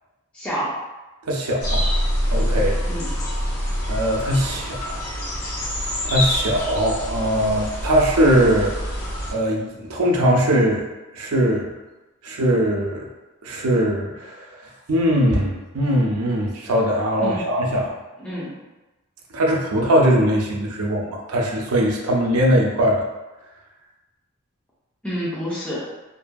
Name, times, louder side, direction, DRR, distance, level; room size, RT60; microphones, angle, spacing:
voice 1, 0.3-0.8 2.9-3.2 17.2-17.4 18.2-18.5 25.0-25.9, equal, 5° left, -9 dB, 0.5 m, -28 dB
voice 2, 1.3-1.8 2.3-2.8 3.9-5.0 6.0-8.7 9.3-10.9 11.1-11.7 12.2-13.1 13.4-14.4 14.9-17.9 19.3-23.0, equal, 80° right, -1 dB, 0.5 m, -20 dB
sound 1, 1.6-9.3, equal, 85° left, 0.7 m, -25 dB
2.7 x 2.6 x 2.2 m, 1.1 s
head